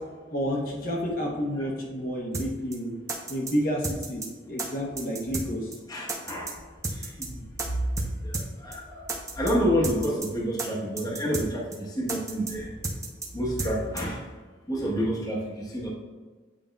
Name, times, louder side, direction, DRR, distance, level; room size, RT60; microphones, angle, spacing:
voice 1, 0.3-2.9 3.3-5.7, equal, 50° left, -2 dB, 0.8 m, -30 dB
sound 1, 2.3-2.5 2.7-2.8 3.1-3.5 3.8-4.3 4.6-4.7 5.0-5.5 5.7-5.8 6.1-6.5 6.8-7.3 7.6-7.7 8.0-8.1 8.3-8.5 8.7-8.8 9.1-9.5 9.8-10.3 10.6-10.7 11.0-11.5 11.7-11.8 12.1-12.5 12.8-13.3 13.6-13.7 14.0-14.1, right 3 dB, 15° right, 0.6 m, -32 dB
voice 2, 5.9-6.6 6.9-7.4 8.0-9.0 9.3-12.7 13.3-14.3 14.7-15.9, equal, 20° left, -4 dB, 1.0 m, -29 dB
8.8 x 5.0 x 2.3 m, 1.4 s
head